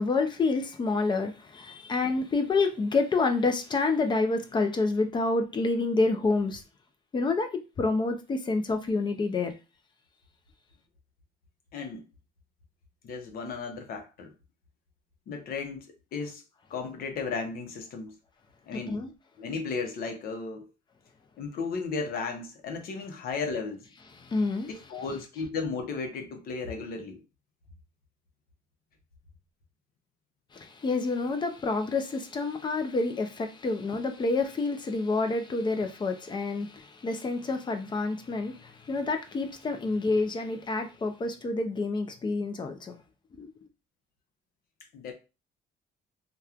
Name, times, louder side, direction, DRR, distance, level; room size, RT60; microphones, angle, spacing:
voice 1, 0.0-6.6 7.1-9.5 18.7-19.1 24.2-24.7 30.5-43.0 43.4-43.5, left 3 dB, 25° left, 0.5 m, -28 dB
voice 2, 11.7-12.0 13.0-14.3 15.3-16.4 16.7-18.2 18.7-19.0 19.4-20.7 21.4-23.8 24.7-27.2 44.9-45.1, left 4 dB, 60° left, 0.8 m, -35 dB
2.9 x 2.3 x 2.4 m
cardioid pair, 110°, 17 cm